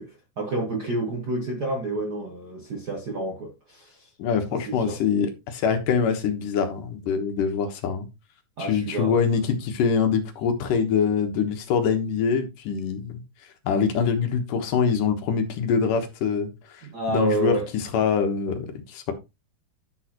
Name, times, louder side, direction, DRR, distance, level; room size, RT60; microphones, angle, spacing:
voice 1, 0.0-4.1 4.5-5.0 8.6-9.2 16.9-17.7, right 2 dB, 55° right, 1.1 m, -29 dB
voice 2, 4.2-8.1 8.6-13.2 13.7-16.5 17.1-19.1, left 6 dB, 80° left, 2.9 m, -24 dB
11.0 x 6.4 x 3.0 m
omnidirectional pair, 3.7 m